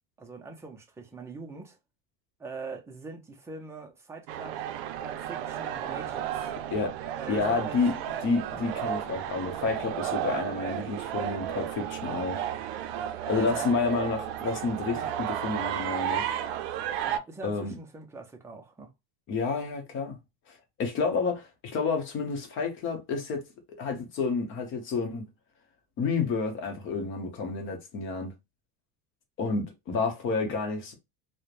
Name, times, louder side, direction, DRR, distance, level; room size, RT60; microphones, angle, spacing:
voice 1, 0.2-1.8 2.4-4.7 5.0-6.5 7.1-7.8 13.3-13.7 14.4-14.5 14.9-15.1 17.0-18.9, right 4 dB, 10° right, 0.4 m, -42 dB
sound 1, 4.3-17.2, right 10 dB, 65° right, 0.5 m, -33 dB
voice 2, 7.3-7.9 8.2-12.5 13.3-16.3 17.4-17.7 19.3-20.2 20.8-23.4 23.8-25.3 26.0-28.3 29.4-30.9, left 4 dB, 40° left, 0.8 m, -30 dB
3.0 x 2.1 x 2.4 m
cardioid pair, 155°, 31 cm